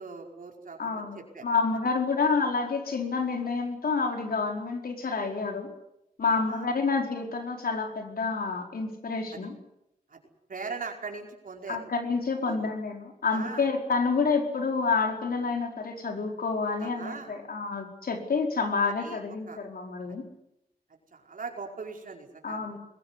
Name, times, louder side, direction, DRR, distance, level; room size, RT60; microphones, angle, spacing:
voice 1, 0.0-1.4 6.3-6.7 9.3-9.5 10.1-10.2 10.5-11.8 12.5-12.7 13.3-13.7 16.8-17.3 18.9-19.2 19.5-19.6 21.1-22.8, right 4 dB, 60° right, 2 dB, 4.9 m, -40 dB
voice 2, 0.8-5.7 6.2-9.5 11.7-20.2 22.4-22.8, left 4 dB, 70° left, 3 dB, 4.8 m, -28 dB
21.5 x 20.0 x 9.7 m, 0.84 s
cardioid pair, 75°, 16 cm